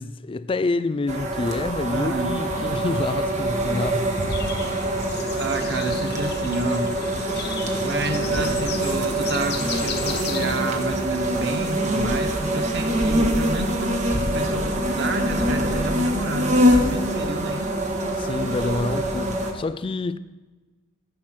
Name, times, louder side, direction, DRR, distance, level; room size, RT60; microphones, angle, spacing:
voice 1, 0.0-4.2 18.2-20.2, left 3 dB, 25° left, 0.3 m, -27 dB
sound 1, 1.1-19.5, right 1 dB, 35° right, 1.5 m, -24 dB
voice 2, 1.9-2.4 4.9-6.9 7.8-17.7, right 2 dB, 60° right, 1.0 m, -30 dB
sound 2, 2.3-10.9, left 4 dB, 55° left, 0.8 m, -33 dB
13.0 x 6.4 x 5.9 m
head